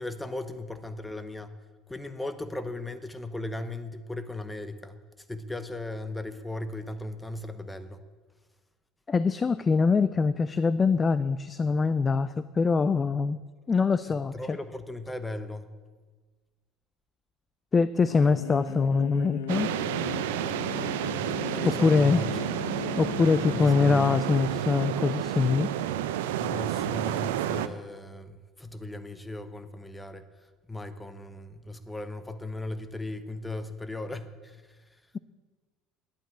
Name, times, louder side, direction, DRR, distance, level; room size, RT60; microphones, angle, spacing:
voice 1, 0.0-1.5 1.9-5.0 5.3-8.0 14.1-15.7 20.3-20.6 21.4-22.6 23.4-24.1 26.4-30.2 30.7-34.6, left 1 dB, 10° left, 11 dB, 1.2 m, -37 dB
voice 2, 9.1-13.4 13.7-14.6 17.7-19.8 21.6-22.2 23.0-25.7, left 4 dB, 25° left, 15 dB, 0.5 m, -24 dB
sound 1, 18.1-24.6, left 10 dB, 75° left, 1.0 m, -38 dB
sound 2, 19.5-27.7, right 11 dB, 75° right, 0.6 m, -30 dB
11.5 x 9.1 x 8.4 m, 1.3 s
hypercardioid pair, 70°, 0 cm